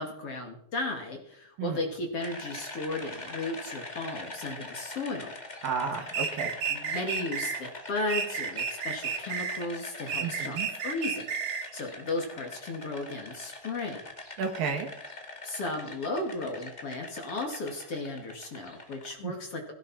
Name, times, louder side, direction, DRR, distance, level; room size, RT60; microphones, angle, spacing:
voice 1, 0.0-5.4 6.7-14.0 15.4-19.7, left 2 dB, 45° left, 2 dB, 3.1 m, -35 dB
sound 1, 2.2-19.1, left 2 dB, 25° left, 0.9 m, -43 dB
voice 2, 5.6-6.5 10.2-10.7 14.4-14.9 19.2-19.3, right 6 dB, 70° right, 4 dB, 3.7 m, -32 dB
sound 2, 6.1-7.6 8.1-9.6 10.1-11.7, right 6 dB, 55° right, 1.9 m, -32 dB
17.0 x 16.5 x 4.4 m, 0.66 s
omnidirectional pair, 4.2 m